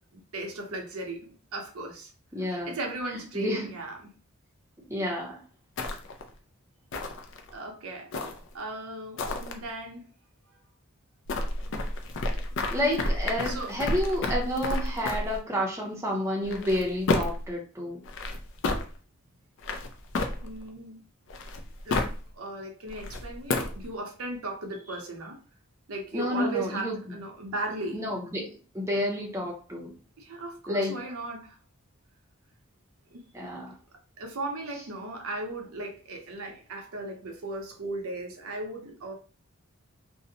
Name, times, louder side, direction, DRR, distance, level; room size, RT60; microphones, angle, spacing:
voice 1, 0.1-2.1 2.4-4.1 7.5-8.3 8.5-10.1 13.4-13.8 20.4-21.0 21.8-25.4 25.9-28.0 30.2-31.6 33.1-33.2 34.2-39.1, right 2 dB, 75° right, 2 dB, 0.6 m, -36 dB
voice 2, 2.3-2.7 3.3-3.7 4.9-5.4 12.7-18.0 26.1-27.0 27.9-29.9 30.7-30.9 33.3-33.7, left 1 dB, 15° right, -2 dB, 0.5 m, -30 dB
sound 1, 5.8-6.3 6.9-7.5 8.1-8.6 9.2-9.5 11.3-15.4 16.4-17.5 18.0-18.8 19.6-20.7 21.3-22.2 22.9-23.8, left 2 dB, 55° left, 0.4 m, -30 dB
2.6 x 2.0 x 2.6 m, 0.37 s
head